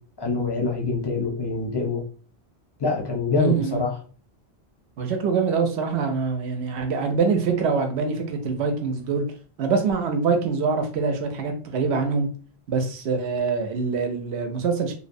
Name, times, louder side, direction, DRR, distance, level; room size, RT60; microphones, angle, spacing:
voice 1, 0.2-2.0 2.8-4.0, left 4 dB, 30° left, -1 dB, 0.5 m, -25 dB
voice 2, 3.3-3.8 5.0-9.2 9.6-12.3 12.7-14.9, right 5 dB, 85° right, 5 dB, 0.9 m, -24 dB
2.7 x 2.0 x 2.6 m, 0.39 s
omnidirectional pair, 1.1 m